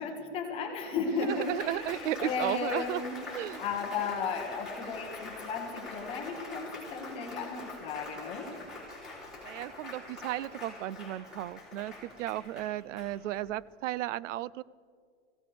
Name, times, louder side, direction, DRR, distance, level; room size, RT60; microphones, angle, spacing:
voice 1, 0.0-3.2 3.6-8.7, left 5 dB, 15° left, 2 dB, 1.0 m, -35 dB
Applause, 0.8-13.5, left 2 dB, ahead, 3.4 m, -44 dB
voice 2, 1.1-3.0 3.3-3.6 9.4-14.6, right 14 dB, 85° right, 21 dB, 0.5 m, -34 dB
22.5 x 16.0 x 3.4 m, 2.1 s
supercardioid pair, 180°, 36 cm